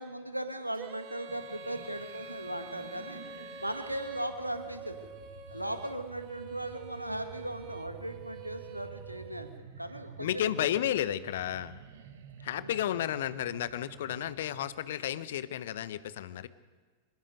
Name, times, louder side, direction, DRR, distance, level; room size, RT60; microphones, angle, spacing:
voice 1, 0.0-3.2 3.6-5.1 5.5-10.5 12.6-12.7, right 1 dB, 85° right, 9 dB, 1.7 m, -38 dB
Female singing, 0.8-9.6, right 4 dB, 35° right, 1.5 m, -46 dB
sound 1, 1.3-14.8, right 7 dB, 60° right, 1.6 m, -51 dB
voice 2, 10.2-11.7 12.4-16.5, left 11 dB, 60° left, 16 dB, 0.9 m, -32 dB
23.5 x 20.5 x 5.3 m, 1.4 s
figure-of-eight pair, 90°, 0 cm